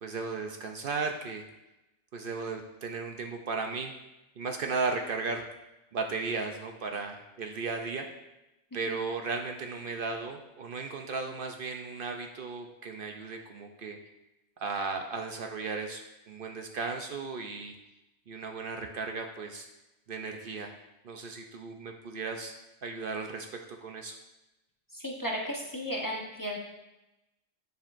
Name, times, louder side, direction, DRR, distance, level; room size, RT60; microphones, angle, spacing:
voice 1, 0.0-1.4 2.1-3.9 4.4-5.4 5.9-8.1 8.7-14.0 14.6-17.7 18.3-19.7 20.1-20.7 21.0-22.5 22.8-23.5 23.8-24.2, right 4 dB, 60° right, 4 dB, 0.8 m, -35 dB
voice 2, 24.9-26.6, equal, 20° left, -2 dB, 0.9 m, -34 dB
8.4 x 7.2 x 2.5 m, 0.96 s
omnidirectional pair, 1.1 m